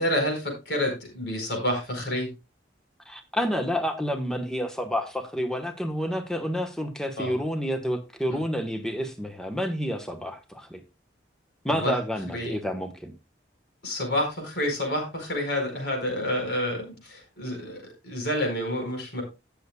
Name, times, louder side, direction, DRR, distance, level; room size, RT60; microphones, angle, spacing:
voice 1, 0.0-2.3 7.2-7.4 8.3-8.4 11.7-12.0 12.3-12.5 13.8-19.2, left 1 dB, 60° left, 3 dB, 4.7 m, -29 dB
voice 2, 3.1-10.8 11.6-13.1, equal, 5° left, 5 dB, 1.1 m, -29 dB
18.0 x 6.9 x 2.3 m, 0.25 s
head